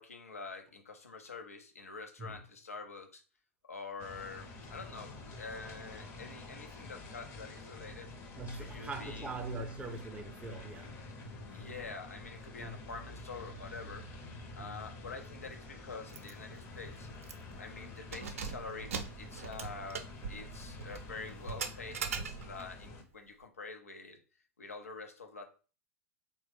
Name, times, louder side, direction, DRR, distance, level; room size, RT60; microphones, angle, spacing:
voice 1, 0.0-3.2 3.7-8.1 8.5-9.3 11.5-14.1 14.6-17.1 17.6-24.2 24.6-25.4, left 4 dB, 85° left, 0.6 m, -46 dB
sound 1, 4.0-23.0, left 2 dB, 40° left, 0.7 m, -48 dB
voice 2, 8.4-10.9 11.5-11.8 12.6-12.9 14.6-14.8, right 2 dB, 15° right, 0.5 m, -42 dB
Keys jangling, 16.1-16.3 16.7-16.8 17.2-17.6 18.0-22.7, right 6 dB, 70° right, 0.4 m, -41 dB
3.1 x 2.2 x 3.3 m
figure-of-eight pair, 90°, 8 cm